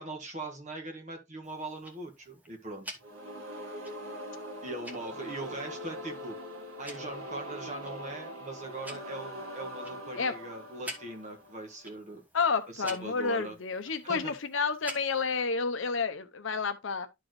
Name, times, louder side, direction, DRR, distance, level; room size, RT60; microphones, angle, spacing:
voice 1, 0.0-2.9 4.6-6.4 6.8-12.2 12.7-13.6 14.0-14.3, right 2 dB, 35° right, 1.7 m, -40 dB
Tick-tock, 1.4-15.4, equal, 10° right, 1.1 m, -50 dB
sound 1, 3.0-11.9, equal, 80° right, 2.4 m, -42 dB
voice 2, 12.3-17.1, left 5 dB, 65° left, 0.8 m, -30 dB
11.5 x 4.6 x 3.1 m
head